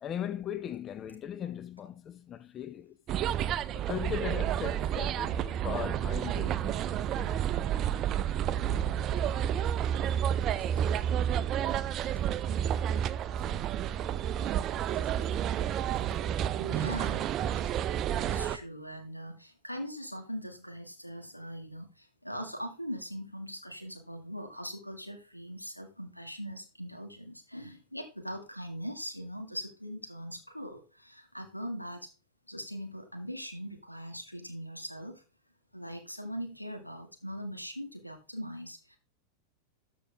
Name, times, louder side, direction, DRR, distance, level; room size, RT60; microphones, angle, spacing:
voice 1, 0.0-2.9 3.7-7.5, left 9 dB, 25° left, 0.5 m, -39 dB
sound 1, 3.1-18.6, right 10 dB, 30° right, 0.5 m, -30 dB
voice 2, 16.6-17.7 18.1-32.1 32.5-35.2 35.7-39.0, equal, 90° left, 2.0 m, -41 dB
13.0 x 6.2 x 3.5 m
figure-of-eight pair, 90°, 0 cm